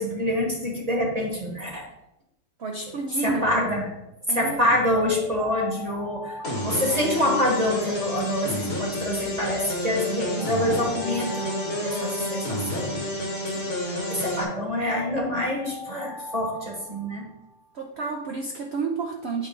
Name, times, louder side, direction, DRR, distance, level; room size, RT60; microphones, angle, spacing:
voice 1, 0.0-1.8 3.2-3.8 4.3-13.7 14.1-17.3, left 1 dB, 25° right, -1 dB, 1.1 m, -26 dB
voice 2, 2.6-3.4 4.3-4.6 17.7-19.5, right 4 dB, 65° right, 2 dB, 0.6 m, -30 dB
Alarm, 4.9-8.2 9.4-13.2 14.4-17.7, left 1 dB, 5° left, 0.8 m, -42 dB
sound 1, 6.4-14.4, left 1 dB, 40° left, 1.3 m, -30 dB
8.2 x 3.2 x 5.3 m, 0.90 s
omnidirectional pair, 1.9 m